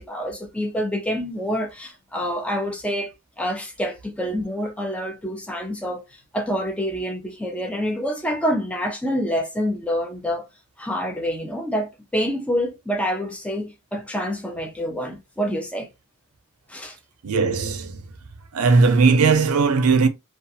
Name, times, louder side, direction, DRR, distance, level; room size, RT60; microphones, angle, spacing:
voice 1, 0.0-3.1 3.4-10.4 10.8-15.9 16.7-17.0, equal, 5° left, 0.4 m, -27 dB
voice 2, 17.2-18.1 18.5-20.1, right 4 dB, 85° right, 0.5 m, -18 dB
2.4 x 2.4 x 2.6 m
head